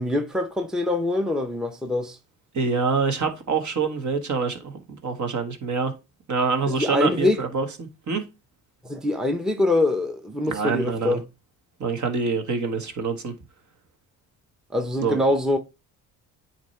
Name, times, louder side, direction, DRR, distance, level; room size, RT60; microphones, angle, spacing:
voice 1, 0.0-2.2 6.7-7.4 8.8-11.2 14.7-15.6, left 1 dB, ahead, 0.8 m, -24 dB
voice 2, 2.5-5.9 6.3-8.2 10.5-11.2 11.8-13.3 15.0-15.2, right 5 dB, 45° right, 1.6 m, -26 dB
8.6 x 3.1 x 4.4 m
supercardioid pair, 80°, 39 cm